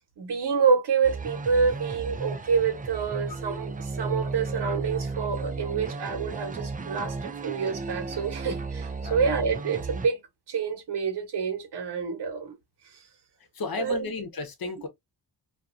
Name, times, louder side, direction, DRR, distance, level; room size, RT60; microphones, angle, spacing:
voice 1, 0.2-10.2 10.5-12.5 13.8-14.1, right 5 dB, 70° right, 1.1 m, -27 dB
sound 1, 1.0-10.1, right 3 dB, 20° right, 0.3 m, -34 dB
voice 2, 13.5-14.9, left 3 dB, 55° left, 0.9 m, -33 dB
2.5 x 2.3 x 2.5 m
cardioid pair, 65°, 42 cm